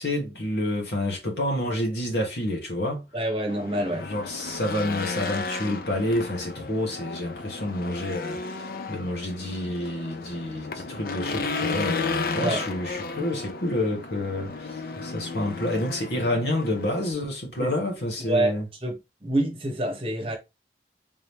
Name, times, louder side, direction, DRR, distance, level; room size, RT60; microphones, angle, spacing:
voice 1, 0.0-3.1 3.9-18.7, left 1 dB, 70° left, 1.5 m, -29 dB
voice 2, 3.1-4.1 12.4-12.6 17.6-17.7 18.3-19.0 19.2-20.4, right 1 dB, 30° right, 1.1 m, -26 dB
Race car auto racing / Engine, 3.5-17.1, left 4 dB, 55° left, 0.5 m, -33 dB
3.8 x 2.9 x 3.3 m
head